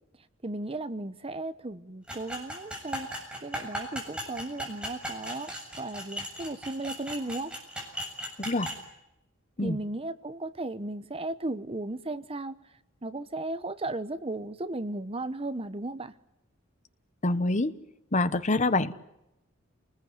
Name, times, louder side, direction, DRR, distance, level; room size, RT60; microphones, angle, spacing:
voice 1, 0.4-3.1 3.4-7.5 9.6-12.6 13.0-16.1, right 2 dB, 30° right, 1.0 m, -35 dB
sound 1, 2.1-8.8, equal, 5° right, 7.4 m, -37 dB
voice 2, 8.4-8.7 9.6-9.8 17.2-17.7 18.1-18.9, left 2 dB, 35° left, 1.1 m, -25 dB
28.5 x 20.0 x 9.6 m
head